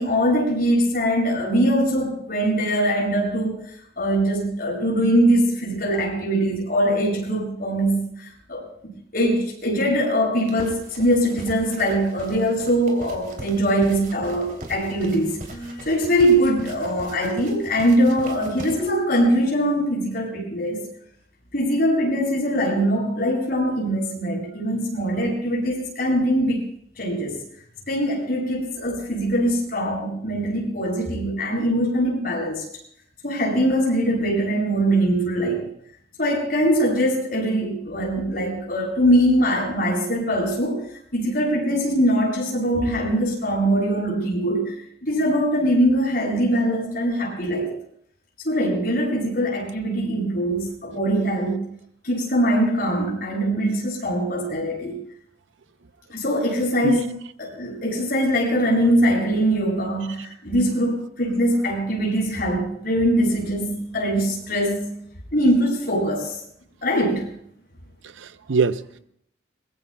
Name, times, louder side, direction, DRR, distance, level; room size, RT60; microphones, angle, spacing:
voice 1, 0.0-3.6 4.0-8.7 9.1-20.8 21.5-26.7 27.0-27.4 27.9-32.6 33.2-35.7 36.2-40.8 41.1-44.7 45.0-47.7 48.4-51.7 52.0-55.0 56.1-57.0 57.4-64.9 65.3-66.4 66.8-67.3, equal, 50° left, 7.3 m, -22 dB
sound 1, 10.4-18.9, right 1 dB, 45° right, 2.9 m, -40 dB
voice 2, 68.0-69.0, right 4 dB, 85° right, 0.6 m, -24 dB
22.5 x 22.0 x 2.3 m
head